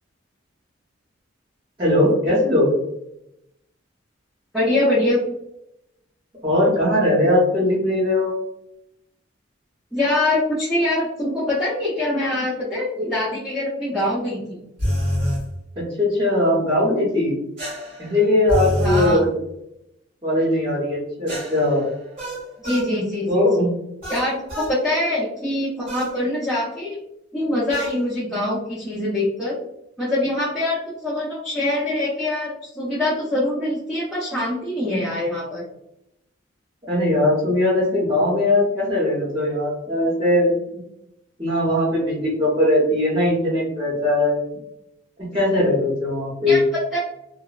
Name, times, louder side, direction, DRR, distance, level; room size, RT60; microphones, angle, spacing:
voice 1, 1.8-2.7 6.4-8.3 15.8-17.4 18.0-19.3 20.2-21.8 23.3-23.7 36.9-40.5 41.4-44.5 45.3-46.6, left 1 dB, 25° right, -8 dB, 0.9 m, -20 dB
voice 2, 4.5-5.2 9.9-14.6 18.8-19.3 22.6-23.7 24.1-27.0 27.3-29.5 30.0-35.7 46.5-47.0, left 1 dB, ahead, -8 dB, 0.5 m, -24 dB
sound 1, 14.8-15.4 17.6-19.1 21.3-22.9 24.0-24.8 25.9-26.2 27.7-28.0, equal, 45° right, 1.4 m, -26 dB
2.9 x 2.0 x 2.3 m, 0.81 s
head